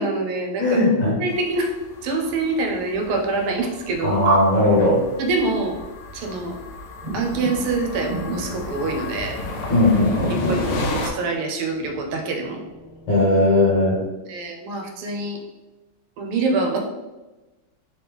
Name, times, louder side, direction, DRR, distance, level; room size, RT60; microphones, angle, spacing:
voice 1, 0.0-1.7 2.0-4.4 5.2-5.7 6.1-6.6 7.1-9.3 10.3-12.6 14.3-15.4 16.2-16.8, right 3 dB, 80° right, 2 dB, 1.5 m, -25 dB
voice 2, 0.6-1.2 4.0-5.0 9.7-10.6 13.1-14.0, left 2 dB, 55° left, -7 dB, 1.6 m, -18 dB
sound 1, 1.3-11.1, left 2 dB, 80° left, 1.5 m, -33 dB
sound 2, 7.0-14.0, right 1 dB, 35° right, 0.9 m, -38 dB
3.8 x 3.1 x 3.4 m, 1.1 s
omnidirectional pair, 2.4 m